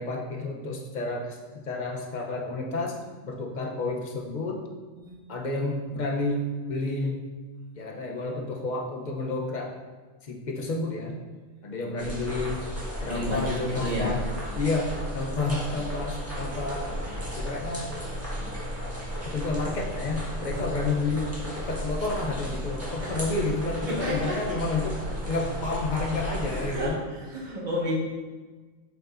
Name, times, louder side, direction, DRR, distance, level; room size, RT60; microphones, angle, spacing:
voice 1, 0.0-4.6 5.3-7.3 7.8-9.8 10.2-11.2 11.6-12.7 13.0-14.2 14.6-17.0 17.4-18.0 19.2-21.3 21.6-25.0 25.3-27.0, left 2 dB, 40° left, 0 dB, 0.8 m, -30 dB
sound 1, 12.0-26.9, equal, 10° right, 1.6 m, -34 dB
voice 2, 13.1-14.2 20.6-20.8 23.0-23.2 23.9-24.4 26.4-27.9, equal, 35° right, -5 dB, 1.6 m, -31 dB
8.0 x 5.1 x 2.6 m, 1.4 s
omnidirectional pair, 1.3 m